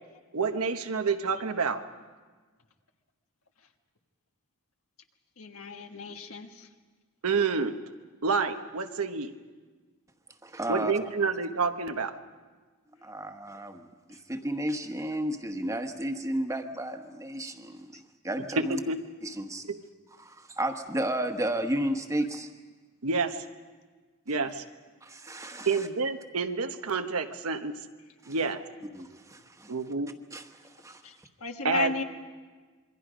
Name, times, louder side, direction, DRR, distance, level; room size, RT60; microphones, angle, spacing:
voice 1, 0.3-1.8 7.2-7.7 8.2-9.3 10.7-12.1 18.7-19.0 19.7-19.8 23.0-23.4 24.3-24.6 25.6-27.8 28.3-28.6 29.7-30.1 31.6-31.9, right 4 dB, 90° right, 7 dB, 1.2 m, -28 dB
voice 2, 5.4-6.7 14.1-14.2 31.0-32.0, left 4 dB, 70° left, 5 dB, 1.5 m, -35 dB
voice 3, 10.4-10.9 13.0-18.8 19.2-19.6 20.2-22.5 25.0-25.9 28.2-28.4 28.9-29.8 30.3-31.3, right 1 dB, 15° right, 6 dB, 1.3 m, -33 dB
27.0 x 22.5 x 5.1 m, 1.4 s
head